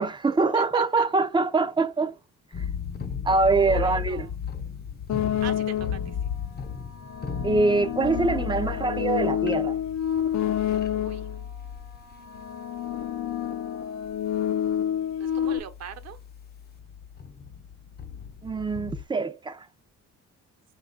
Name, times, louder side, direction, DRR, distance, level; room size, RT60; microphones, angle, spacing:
voice 1, 0.0-2.1 2.6-2.7 3.2-4.3 7.4-9.8 18.4-19.7, right 3 dB, 15° right, 0.5 m, -24 dB
voice 2, 0.5-1.1 3.6-4.4 5.4-6.3 10.9-11.4 15.2-16.2, right 10 dB, 60° right, 0.9 m, -40 dB
sound 1, 2.5-13.8 14.0-14.4 14.7-14.8 15.1-19.0, left 7 dB, 35° left, 0.7 m, -36 dB
sound 2, 5.1-6.2 6.9-11.4 12.2-15.6, left 10 dB, 65° left, 0.7 m, -28 dB
5.6 x 2.4 x 3.9 m
cardioid pair, 135°, 30 cm